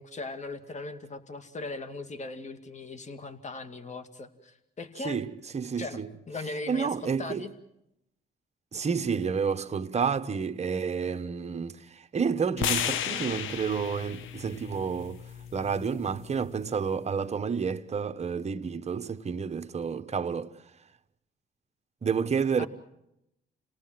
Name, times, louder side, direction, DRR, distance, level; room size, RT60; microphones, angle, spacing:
voice 1, 0.0-5.2 5.8-6.0 6.3-7.5 22.6-22.7, left 3 dB, 35° left, 2.5 m, -39 dB
voice 2, 5.0-6.1 6.7-7.4 8.7-15.2 15.5-20.6 22.0-22.7, right 6 dB, 35° right, 1.3 m, -30 dB
sound 1, 12.6-16.8, left 9 dB, 85° left, 1.1 m, -34 dB
29.5 x 18.5 x 7.7 m
cardioid pair, 90°, 20 cm